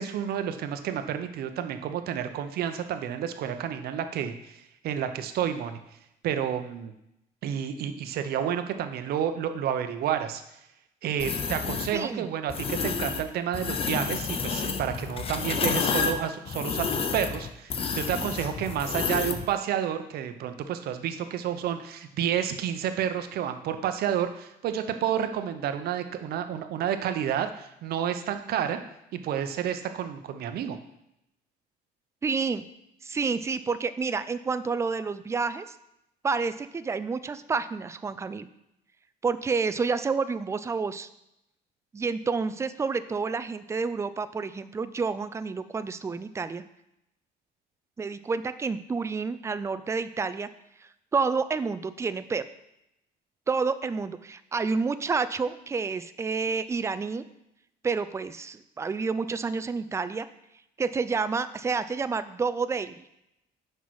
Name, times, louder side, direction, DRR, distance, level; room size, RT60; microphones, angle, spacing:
voice 1, 0.0-5.8 6.2-6.9 7.4-10.4 11.0-28.8 29.1-30.8, right 9 dB, 65° right, 8 dB, 0.7 m, -30 dB
sound 1, 11.2-11.9 12.5-13.2 13.5-19.5, left 5 dB, 35° left, 0.6 m, -30 dB
voice 2, 11.9-12.3 32.2-32.6 33.0-35.7 36.2-38.5 39.2-41.1 41.9-46.6 48.0-50.5 51.1-52.4 53.5-57.2 57.8-60.3 60.8-63.0, right 4 dB, 15° right, 12 dB, 0.4 m, -29 dB
6.1 x 5.5 x 4.7 m, 0.83 s
cardioid pair, 110°, 17 cm